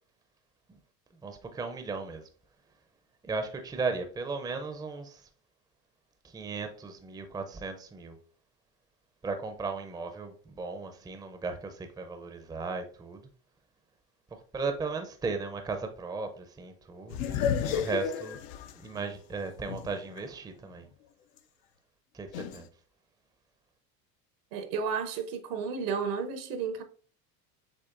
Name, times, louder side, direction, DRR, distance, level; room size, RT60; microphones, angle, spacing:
voice 1, 1.2-2.2 3.2-5.2 6.3-8.2 9.2-13.2 14.5-18.4 18.7-20.9 22.1-22.7, right 4 dB, 10° right, 0.5 m, -36 dB
sound 1, 17.1-20.2 20.7-20.8 22.3-22.6, left 8 dB, 70° left, 0.6 m, -32 dB
voice 2, 24.5-26.8, right 6 dB, 75° right, 1.0 m, -32 dB
7.0 x 2.5 x 2.5 m
hypercardioid pair, 90°, 49 cm